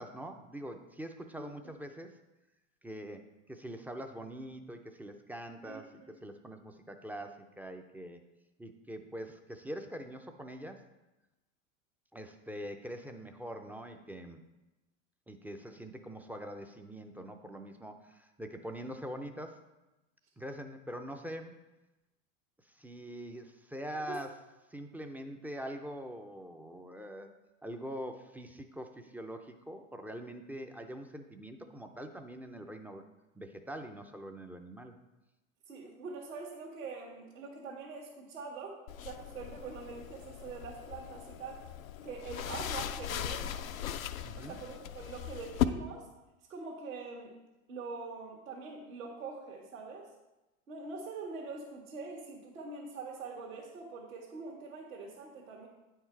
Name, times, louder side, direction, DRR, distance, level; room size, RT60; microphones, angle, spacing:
voice 1, 0.0-2.2 2.8-5.9 6.2-8.2 8.6-10.8 12.1-14.4 15.3-19.6 20.4-21.6 22.6-24.4 24.7-27.3 27.6-33.0 33.4-35.0 44.2-44.6, equal, 5° right, 5 dB, 0.3 m, -44 dB
voice 2, 1.4-1.7 5.6-6.1 24.0-24.2 35.7-41.6 42.0-43.8 44.3-46.1 46.5-47.4 47.7-50.1 50.7-55.7, right 4 dB, 80° right, -3 dB, 1.5 m, -44 dB
sound 1, 38.9-45.6, left 11 dB, 90° left, 0.5 m, -38 dB
9.2 x 4.7 x 4.4 m, 1.0 s
hypercardioid pair, 95°, 40 cm